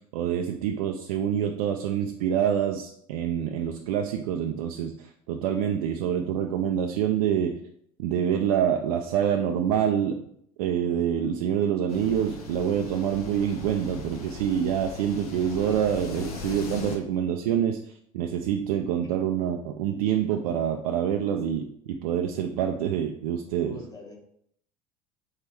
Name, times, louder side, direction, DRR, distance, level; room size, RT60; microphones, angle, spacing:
voice 1, 0.1-7.6 8.0-10.2 10.6-23.8, right 9 dB, 75° right, 0.4 m, -26 dB
sound 1, 11.9-17.0, left 4 dB, 90° left, 0.8 m, -39 dB
voice 2, 23.6-24.2, left 3 dB, 20° left, 1.4 m, -43 dB
3.5 x 3.2 x 4.4 m
hypercardioid pair, 80°, 18 cm